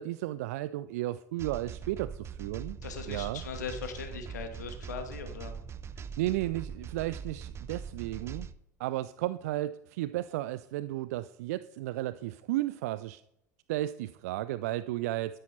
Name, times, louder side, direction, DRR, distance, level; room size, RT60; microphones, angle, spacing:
voice 1, 0.0-2.8 3.1-3.4 6.0-8.5 8.8-13.2 13.7-15.4, right 15 dB, 60° right, 16 dB, 0.4 m, -34 dB
sound 1, 1.4-8.5, right 6 dB, 30° right, 0.7 m, -42 dB
voice 2, 2.8-5.6, left 6 dB, 70° left, 6 dB, 1.9 m, -39 dB
12.5 x 10.0 x 4.3 m, 0.80 s
figure-of-eight pair, 70°, 9 cm